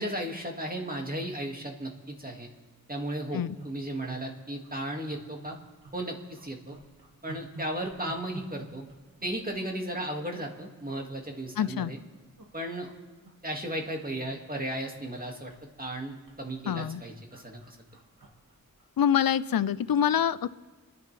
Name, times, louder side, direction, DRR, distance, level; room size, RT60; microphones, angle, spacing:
voice 1, 0.0-2.5 2.9-5.6 5.9-6.8 7.2-8.9 9.2-12.0 12.5-12.9 13.4-15.5 15.8-17.8, right 1 dB, 25° right, 1 dB, 2.1 m, -35 dB
sound 1, 3.6-4.2 4.6-4.7 5.1-6.0 6.3-10.5 10.9-11.1 11.7-12.5 12.8-13.0 13.2-14.4 14.7-19.2 19.5-19.7, right 2 dB, 80° right, 2.1 m, -50 dB
voice 2, 11.6-11.9 16.7-17.0 19.0-20.5, left 9 dB, 85° left, 17 dB, 0.5 m, -25 dB
29.5 x 11.0 x 3.4 m, 1.3 s
wide cardioid pair, 50°, 34 cm